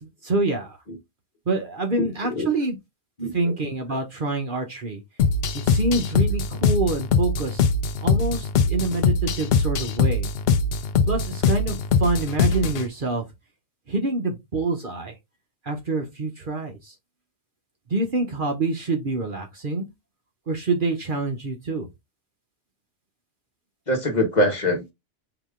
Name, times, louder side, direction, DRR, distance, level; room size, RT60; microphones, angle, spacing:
voice 1, 0.0-0.8 1.5-2.8 3.3-5.0 5.5-7.6 8.0-10.3 11.1-13.2 13.9-15.1 15.6-16.9 17.9-19.9 20.5-21.9, right 2 dB, 45° right, 1.0 m, -26 dB
voice 2, 2.0-2.5 3.2-3.3 23.9-24.9, left 1 dB, 35° left, 1.2 m, -23 dB
sound 1, 5.2-12.9, left 4 dB, 60° left, 0.7 m, -22 dB
4.8 x 2.9 x 3.6 m
omnidirectional pair, 1.3 m